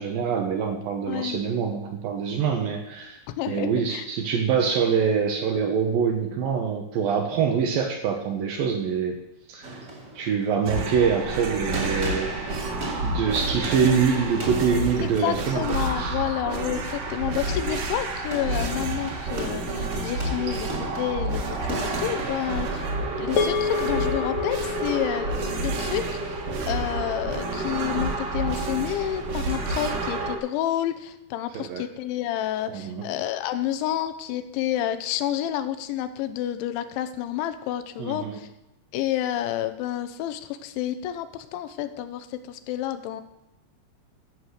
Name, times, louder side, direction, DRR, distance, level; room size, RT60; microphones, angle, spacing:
voice 1, 0.0-3.2 3.5-9.2 9.5-9.8 10.1-12.3 13.0-15.6 16.0-16.2 31.5-31.9 32.7-33.1 38.0-38.4, right 6 dB, 75° right, 5 dB, 2.2 m, -25 dB
voice 2, 1.1-1.4 3.3-4.1 15.0-22.9 23.2-26.4 26.7-38.5 38.9-43.2, left 12 dB, 85° left, 9 dB, 3.1 m, -29 dB
sound 1, 9.6-24.2, right 1 dB, 30° right, 1.9 m, -38 dB
sound 2, 10.7-30.4, right 2 dB, 55° right, 2.6 m, -29 dB
sound 3, 23.4-27.9, left 6 dB, 70° left, 2.3 m, -30 dB
14.0 x 7.7 x 6.6 m, 0.89 s
omnidirectional pair, 5.4 m